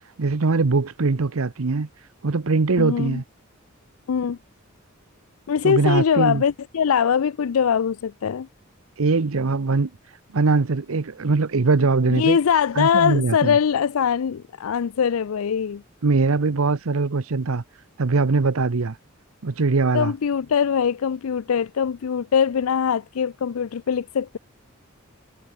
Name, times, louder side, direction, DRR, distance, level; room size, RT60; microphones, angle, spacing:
voice 1, 0.2-1.9 2.2-3.2 5.6-6.4 9.0-9.9 10.3-12.4 12.7-13.6 16.0-17.6 18.0-19.0 19.4-20.1, right 3 dB, 85° right, 0.8 m, -21 dB
voice 2, 2.8-3.2 4.1-4.4 5.5-8.5 12.1-15.8 19.9-24.4, left 7 dB, 90° left, 0.4 m, -22 dB
head